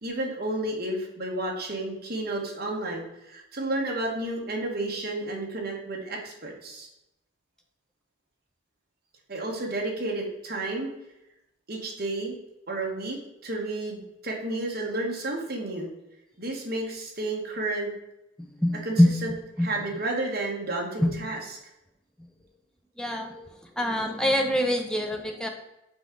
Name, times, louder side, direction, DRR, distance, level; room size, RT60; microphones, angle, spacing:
voice 1, 0.0-6.9 9.3-10.9 11.7-12.4 12.7-15.9 16.4-17.9 18.8-19.3 19.6-21.4, right 2 dB, 50° right, -1 dB, 1.3 m, -31 dB
voice 2, 18.6-19.1 19.6-19.7 21.0-21.1 23.0-23.5 23.8-25.5, left 1 dB, 5° left, 3 dB, 0.5 m, -24 dB
6.0 x 4.7 x 3.8 m, 0.90 s
head